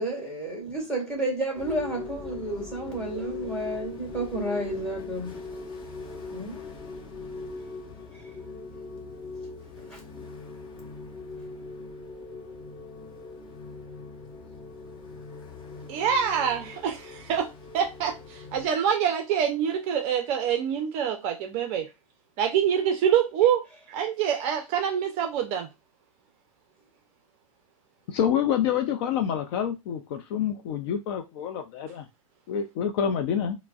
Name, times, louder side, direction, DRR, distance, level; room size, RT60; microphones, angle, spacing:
voice 1, 0.0-5.4 6.3-6.6 8.1-8.2 9.8-10.0 11.3-11.4, right 1 dB, 5° left, 1.7 m, -31 dB
sound 1, 1.6-18.7, left 3 dB, 25° left, 1.1 m, -40 dB
voice 2, 15.9-17.5 17.7-21.9 22.4-25.7, right 8 dB, 35° right, 0.5 m, -26 dB
voice 3, 28.1-32.1 32.5-33.6, left 8 dB, 45° left, 0.5 m, -27 dB
4.5 x 2.1 x 2.3 m
hypercardioid pair, 105°, 18 cm